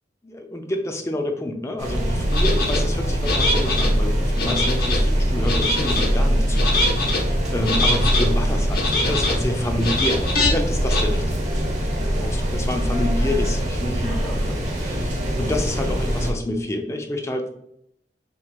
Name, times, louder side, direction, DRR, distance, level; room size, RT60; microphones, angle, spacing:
voice 1, 0.2-17.5, left 1 dB, 15° left, 3 dB, 0.5 m, -29 dB
sound 1, 1.8-16.3, equal, 40° right, 1.1 m, -23 dB
sound 2, 2.3-2.8 3.2-3.9 4.4-5.0 5.4-6.1 6.5-7.2 7.6-8.3 8.7-9.4 9.8-10.5 10.9-11.0, left 2 dB, 60° left, 1.1 m, -23 dB
6.0 x 3.2 x 2.4 m, 0.74 s
head